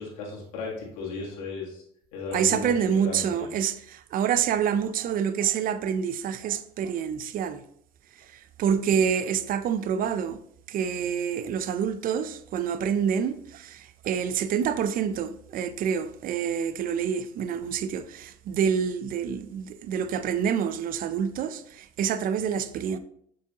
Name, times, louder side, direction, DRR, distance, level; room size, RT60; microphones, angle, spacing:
voice 1, 0.0-1.8 2.1-2.7 3.0-3.5, left 3 dB, 85° left, 1.8 m, -35 dB
voice 2, 2.3-7.6 8.3-10.4 10.7-23.0, right 7 dB, 50° right, 0.5 m, -27 dB
6.9 x 5.0 x 2.9 m
supercardioid pair, 80°, 18 cm